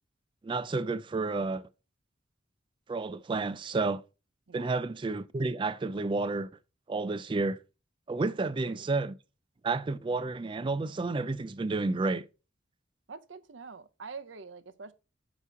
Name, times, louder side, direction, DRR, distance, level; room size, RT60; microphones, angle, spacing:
voice 1, 0.4-1.6 2.9-4.0 4.5-6.5 6.9-7.6 8.1-9.1 9.6-12.3, right 3 dB, 25° right, 0.3 m, -31 dB
voice 2, 8.4-8.8 13.1-14.9, right 4 dB, 70° right, 0.7 m, -45 dB
8.1 x 3.0 x 5.7 m
head